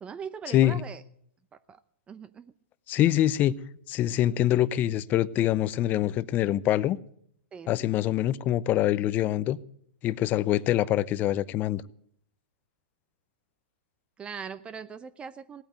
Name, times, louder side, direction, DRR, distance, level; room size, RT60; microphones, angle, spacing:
voice 1, 0.0-1.0 1.5-1.8 2.1-2.5 7.5-7.9 14.2-15.6, right 6 dB, 20° right, 0.7 m, -40 dB
voice 2, 2.9-3.6 3.9-7.0 7.7-9.6 10.0-11.8, left 13 dB, 30° left, 0.6 m, -24 dB
17.5 x 8.7 x 9.4 m
hypercardioid pair, 130°, 6 cm